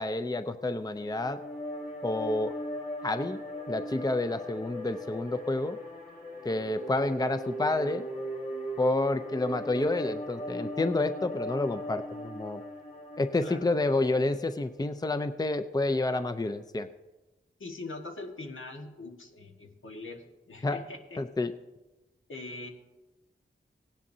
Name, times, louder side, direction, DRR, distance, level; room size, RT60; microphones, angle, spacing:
voice 1, 0.0-1.4 2.0-2.5 3.0-3.4 3.7-5.8 6.4-8.1 8.8-12.6 13.2-16.9 20.6-20.8 21.2-21.5, left 2 dB, 20° left, 10 dB, 0.5 m, -29 dB
sound 1, 0.9-14.2, equal, 45° left, 1.9 m, -38 dB
voice 2, 13.4-13.7 17.6-21.2 22.3-22.7, left 2 dB, 80° left, 2 dB, 1.6 m, -42 dB
17.0 x 10.0 x 2.8 m, 1.1 s
cardioid pair, 50°, 20 cm